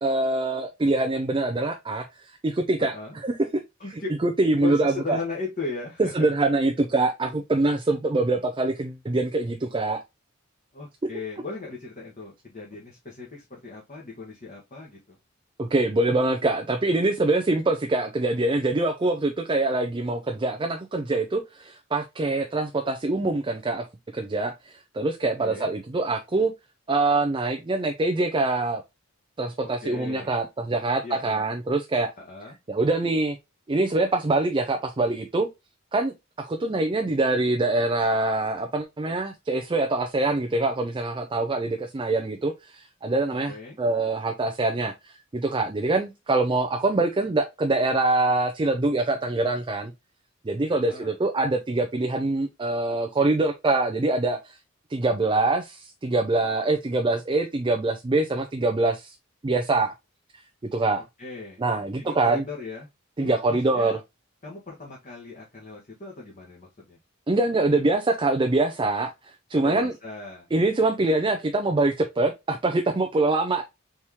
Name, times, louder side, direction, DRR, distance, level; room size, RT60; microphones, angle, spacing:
voice 1, 0.0-2.1 2.4-2.9 3.2-3.3 4.2-5.2 6.0-10.0 15.6-23.8 24.1-26.5 26.9-28.8 29.4-32.1 32.7-33.4 33.7-35.5 35.9-49.9 50.4-54.6 54.9-59.1 59.4-59.9 60.7-61.0 61.6-62.4 63.2-64.0 67.3-69.1 69.5-69.9 70.5-73.6, right 2 dB, 25° right, 0.4 m, -24 dB
voice 2, 2.8-3.2 3.8-4.1 4.6-6.3 10.7-15.2 25.4-25.7 29.6-30.3 31.0-31.4 32.2-32.6 43.5-43.8 50.7-51.2 61.0-61.6 62.0-62.9 63.2-64.0 64.4-67.0 69.5-70.5, left 3 dB, 40° left, 1.3 m, -37 dB
4.3 x 3.5 x 2.8 m
head